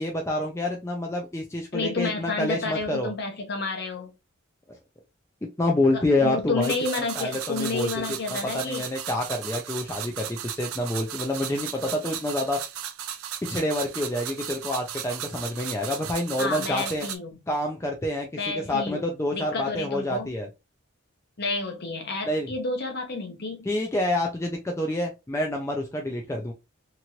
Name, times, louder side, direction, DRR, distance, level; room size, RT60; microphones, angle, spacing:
voice 1, 0.0-3.1 5.6-6.7 7.1-12.6 13.4-17.1 17.5-18.3 18.5-20.5 22.3-22.5 23.7-26.5, left 1 dB, 15° left, 0.4 m, -27 dB
voice 2, 1.7-4.1 5.9-8.9 16.4-17.4 18.4-20.3 21.4-23.7, left 3 dB, 50° left, 0.9 m, -30 dB
sound 1, 6.6-17.2, right 10 dB, 80° right, 0.4 m, -36 dB
2.9 x 2.5 x 2.8 m
head